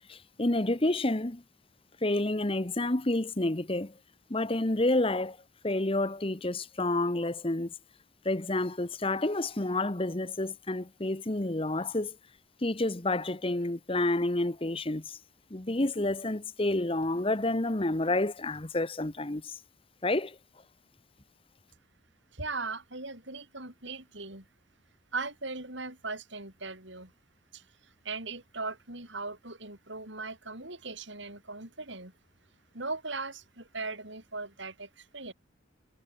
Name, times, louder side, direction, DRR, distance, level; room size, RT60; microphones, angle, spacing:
voice 1, 0.1-1.4 2.0-3.9 4.3-5.4 5.6-7.7 8.2-12.2 12.6-15.2 15.5-19.6 20.0-20.4, left 2 dB, 25° left, 1.0 m, -29 dB
voice 2, 22.3-24.5 25.1-27.1 27.5-32.1 32.7-35.3, right 3 dB, 65° right, 7.2 m, -39 dB
head